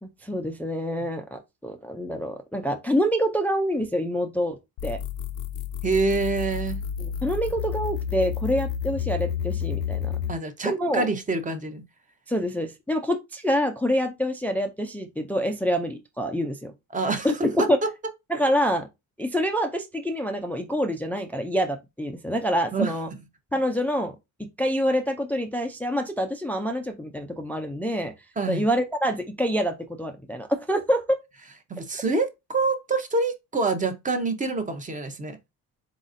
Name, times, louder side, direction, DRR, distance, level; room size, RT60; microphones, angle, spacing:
voice 1, 0.0-4.6 4.8-5.0 7.0-10.1 10.6-11.1 12.3-16.7 17.2-17.8 18.3-18.9 19.2-23.1 23.5-24.1 24.6-28.1 28.5-31.2, equal, 5° left, 0.3 m, -26 dB
sound 1, 4.8-10.3, left 8 dB, 70° left, 0.5 m, -30 dB
voice 2, 5.8-6.8 10.3-11.8 16.9-17.7 22.7-22.9 28.4-28.7 31.7-35.4, right 3 dB, 20° right, 0.7 m, -26 dB
4.1 x 3.9 x 2.5 m
cardioid pair, 140°, 38 cm